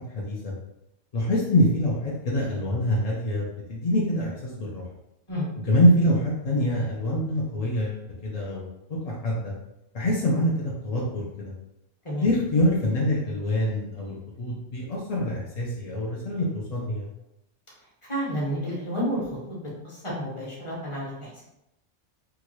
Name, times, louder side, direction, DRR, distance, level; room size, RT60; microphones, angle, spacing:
voice 1, 0.1-0.5 1.1-4.9 5.7-9.5 9.9-11.5 12.2-17.1, left 1 dB, 60° left, -4 dB, 0.4 m, -25 dB
voice 2, 18.1-21.4, equal, 30° left, -6 dB, 0.9 m, -31 dB
2.9 x 2.4 x 3.0 m, 0.88 s
omnidirectional pair, 1.2 m